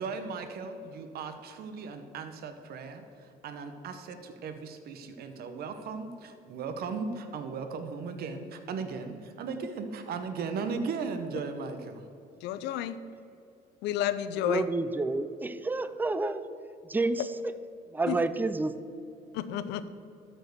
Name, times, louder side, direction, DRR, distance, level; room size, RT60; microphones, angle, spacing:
voice 1, 0.0-12.1, right 5 dB, 65° right, 7 dB, 0.9 m, -37 dB
voice 2, 12.4-13.0 13.8-14.7 18.1-18.2 19.3-19.9, left 11 dB, 90° left, 13 dB, 0.6 m, -31 dB
voice 3, 14.4-16.5 16.8-17.5 17.9-18.7, right 3 dB, 10° right, 12 dB, 0.4 m, -29 dB
13.0 x 4.5 x 6.5 m, 2.6 s
cardioid pair, 110°, 17 cm